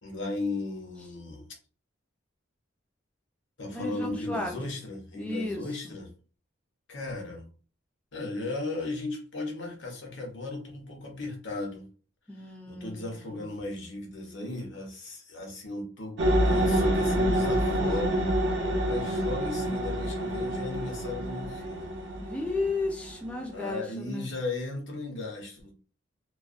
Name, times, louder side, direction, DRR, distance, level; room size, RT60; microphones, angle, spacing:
voice 1, 0.0-1.4 3.6-6.1 6.9-7.5 8.1-11.9 12.4-18.3 18.8-21.9 23.5-25.7, left 2 dB, 70° left, 0.8 m, -36 dB
voice 2, 3.7-4.5 5.1-5.9 12.3-13.4 22.2-24.3, left 2 dB, 5° left, 0.4 m, -34 dB
sound 1, 16.2-23.5, equal, 55° right, 0.6 m, -27 dB
2.3 x 2.2 x 2.4 m
head